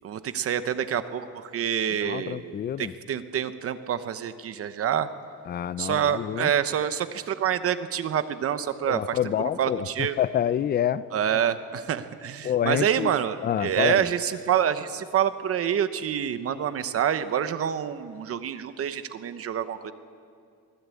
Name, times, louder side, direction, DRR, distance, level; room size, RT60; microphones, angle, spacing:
voice 1, 0.0-5.1 5.8-10.2 11.1-19.9, right 9 dB, 40° right, 11 dB, 0.9 m, -27 dB
voice 2, 2.0-2.9 5.5-6.5 8.9-11.0 12.4-13.1 13.4-14.1, left 10 dB, 30° left, 17 dB, 0.5 m, -27 dB
24.0 x 16.5 x 8.4 m, 2.3 s
cardioid pair, 155°, 34 cm